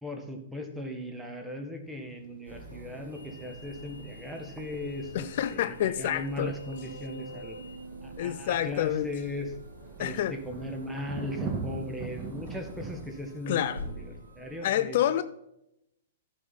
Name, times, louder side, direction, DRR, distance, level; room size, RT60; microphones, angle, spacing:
voice 1, 0.0-7.6 8.0-9.5 10.0-15.2, left 1 dB, 5° right, 1.6 m, -38 dB
sound 1, 1.9-2.8 3.1-4.1 4.4-4.5 4.9-5.2 5.6-5.9 6.7-6.8 7.2-13.1, right 4 dB, 30° right, 1.7 m, -41 dB
sound 2, 2.4-14.6, equal, 90° right, 3.0 m, -47 dB
voice 2, 5.1-6.6 8.2-9.1 10.0-10.4 13.5-13.8 14.6-15.2, left 11 dB, 50° left, 0.4 m, -28 dB
sound 3, 5.6-13.4, right 3 dB, 75° right, 0.8 m, -49 dB
14.5 x 6.2 x 4.2 m
figure-of-eight pair, 110°, 0 cm